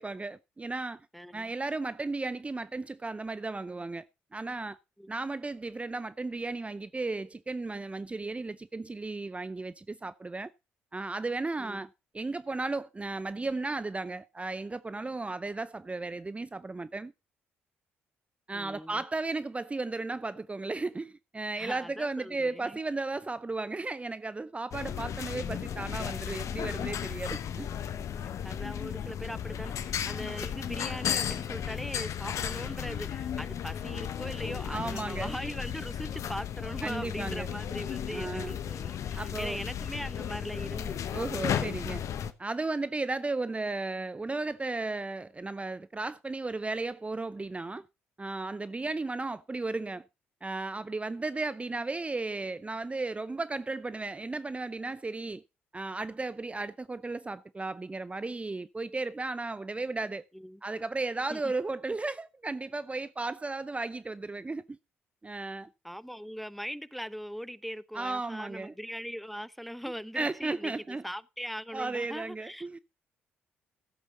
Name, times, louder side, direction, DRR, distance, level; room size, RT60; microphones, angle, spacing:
voice 1, 0.0-1.0 1.3-4.0 4.3-4.8 5.1-10.5 10.9-11.9 12.1-17.1 18.5-27.7 34.7-35.4 36.8-37.5 38.1-38.6 39.2-39.6 41.1-42.0 42.4-47.8 48.2-50.0 50.4-55.4 55.7-60.2 60.6-64.8 65.2-65.7 67.9-68.7 70.1-71.0 71.7-72.8, right 3 dB, 20° right, 0.6 m, -35 dB
voice 2, 1.1-1.5 5.0-5.1 11.6-11.8 18.5-19.0 21.5-22.8 28.4-41.9 60.3-60.6 61.3-61.5 65.8-72.8, equal, ahead, 0.9 m, -40 dB
sound 1, 24.7-42.3, left 9 dB, 60° left, 1.1 m, -35 dB
15.0 x 8.2 x 3.9 m
hypercardioid pair, 45°, 6 cm